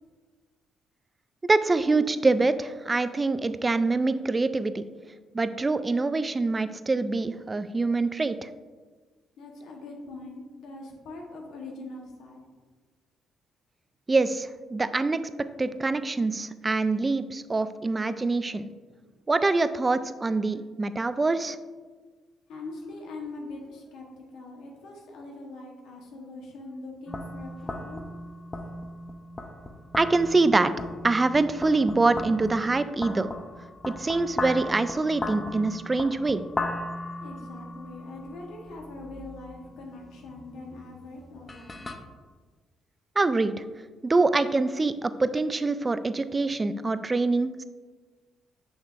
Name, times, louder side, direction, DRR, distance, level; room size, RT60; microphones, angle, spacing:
voice 1, 1.4-4.8 5.3-8.5 14.1-15.2 15.6-18.7 19.3-21.6 30.0-30.7 31.0-33.3 33.9-36.4 43.2-43.5 44.0-47.6, right 3 dB, 25° right, 12 dB, 0.3 m, -25 dB
voice 2, 9.4-12.4 22.5-28.1 37.2-41.8, left 2 dB, 85° left, 0 dB, 1.1 m, -42 dB
sound 1, 27.1-41.9, left 2 dB, 25° left, 0.6 m, -38 dB
6.5 x 6.3 x 2.5 m, 1.4 s
cardioid pair, 90°, 0 cm